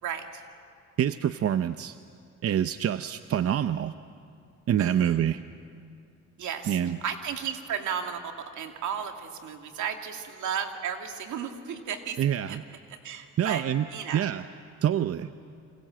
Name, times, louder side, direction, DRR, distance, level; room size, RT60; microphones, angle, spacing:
voice 1, 0.0-0.4 4.8-5.2 6.4-12.6 12.9-13.6 13.9-14.3, right 7 dB, 75° right, 4 dB, 2.5 m, -34 dB
voice 2, 1.0-2.0 2.4-3.9 4.7-5.4 6.7-7.0 12.2-12.6 13.4-13.9 14.1-14.4 14.8-15.3, right 10 dB, 50° right, 11 dB, 0.7 m, -26 dB
28.5 x 26.5 x 7.7 m, 2.3 s
cardioid pair, 90°, 30 cm